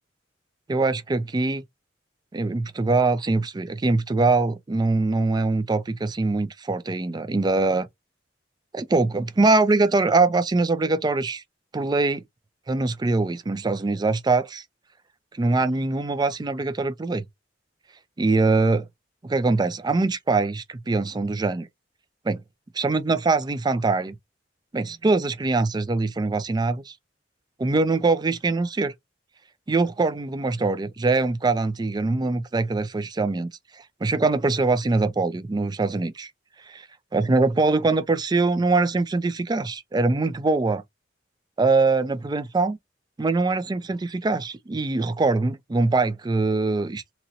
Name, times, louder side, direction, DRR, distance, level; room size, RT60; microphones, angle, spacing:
voice 1, 0.7-1.6 2.3-7.9 8.7-11.4 11.7-12.2 12.7-14.6 15.3-17.2 18.2-18.9 19.2-21.7 22.2-22.4 22.7-24.2 24.7-26.9 27.6-28.9 29.7-36.3 36.6-36.9 37.1-40.8 41.6-42.8 43.2-47.0, right 3 dB, 20° right, 0.4 m, -23 dB
2.9 x 2.5 x 2.7 m
head